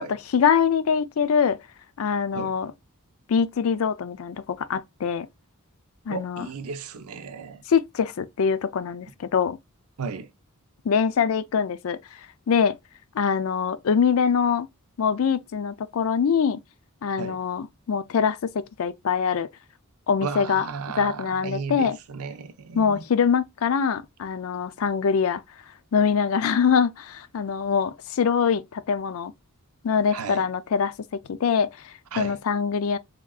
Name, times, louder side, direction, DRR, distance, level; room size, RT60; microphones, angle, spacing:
voice 1, 0.3-1.6 2.0-2.7 3.3-5.3 6.1-6.5 7.7-9.6 10.9-12.0 12.5-12.8 13.1-14.7 15.0-16.6 17.0-19.5 20.1-20.6 21.0-22.0 22.8-25.4 25.9-29.3 29.8-33.0, left 6 dB, 65° left, 0.4 m, -23 dB
voice 2, 6.1-7.6 10.0-10.3 17.2-17.4 20.2-23.0 30.1-30.5 32.1-32.4, right 5 dB, 85° right, 0.6 m, -34 dB
3.7 x 3.4 x 2.3 m
head